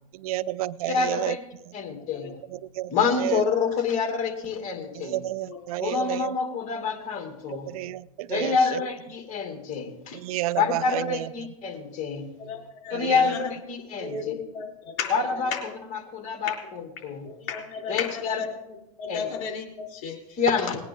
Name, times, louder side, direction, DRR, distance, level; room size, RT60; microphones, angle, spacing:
voice 1, 0.1-1.4 1.7-1.8 2.5-3.5 4.9-6.4 7.5-8.8 10.1-11.5 12.9-13.4 14.0-14.3, right 15 dB, 75° right, 20 dB, 0.4 m, -31 dB
voice 2, 0.9-1.4 1.7-2.4 2.9-5.2 5.8-7.7 8.3-10.2 10.6-12.3 12.9-14.2 15.1-15.5 16.1-17.3 17.9-18.4 19.1-19.3 20.4-20.8, left 5 dB, 40° left, 4 dB, 2.4 m, -27 dB
voice 3, 12.4-13.5 14.0-15.7 17.2-20.4 20.7-20.8, left 5 dB, 65° left, 0 dB, 3.7 m, -35 dB
19.0 x 9.7 x 3.7 m, 0.87 s
supercardioid pair, 115°, 19 cm